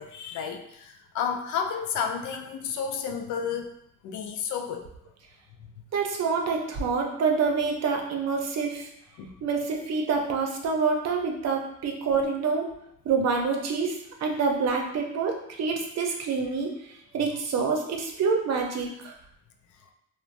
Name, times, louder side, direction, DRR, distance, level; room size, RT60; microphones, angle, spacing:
voice 1, 0.0-3.8 4.0-4.9 9.2-9.3, left 7 dB, 75° left, 5 dB, 0.4 m, -31 dB
voice 2, 5.9-8.9 9.4-12.7 13.0-16.7 17.1-19.1, right 5 dB, 60° right, 2 dB, 0.6 m, -27 dB
3.2 x 2.1 x 2.5 m, 0.77 s
cardioid pair, 90°, 30 cm